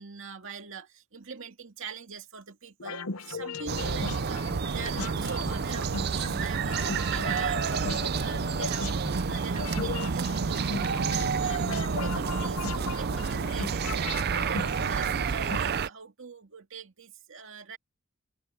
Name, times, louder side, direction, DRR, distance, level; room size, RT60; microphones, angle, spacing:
voice 1, 0.0-17.8, right 5 dB, 65° right, 2.4 m, -43 dB
sound 1, 2.8-15.6, left 4 dB, 85° left, 0.8 m, -38 dB
sound 2, 3.7-15.9, right 5 dB, 50° right, 0.5 m, -29 dB
head